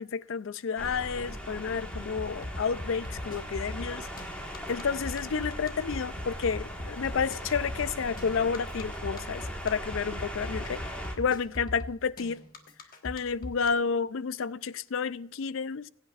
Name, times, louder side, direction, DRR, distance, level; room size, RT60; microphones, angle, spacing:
voice 1, 0.0-4.1 4.7-12.4 13.0-15.9, left 6 dB, 70° left, 0.4 m, -31 dB
sound 1, 0.8-11.1, equal, 5° left, 1.5 m, -39 dB
sound 2, 1.9-13.7, left 1 dB, 40° left, 1.3 m, -39 dB
22.0 x 8.7 x 2.4 m
head